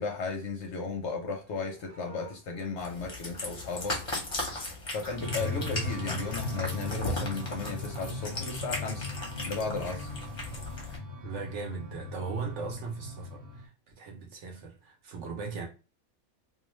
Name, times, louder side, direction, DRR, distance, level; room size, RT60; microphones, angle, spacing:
voice 1, 0.0-4.0 4.9-9.1 9.5-10.1, left 4 dB, 65° left, 0.8 m, -35 dB
Livestock farm animals working animals, 1.2-4.7 4.9-6.3 10.0-11.2, right 2 dB, 45° right, 0.5 m, -55 dB
Cat, 2.8-11.0, left 1 dB, 30° left, 0.6 m, -37 dB
sound 1, 5.2-13.6, left 3 dB, 85° right, 1.2 m, -38 dB
voice 2, 11.2-15.7, right 5 dB, 65° right, 0.8 m, -38 dB
2.4 x 2.2 x 3.0 m
omnidirectional pair, 1.5 m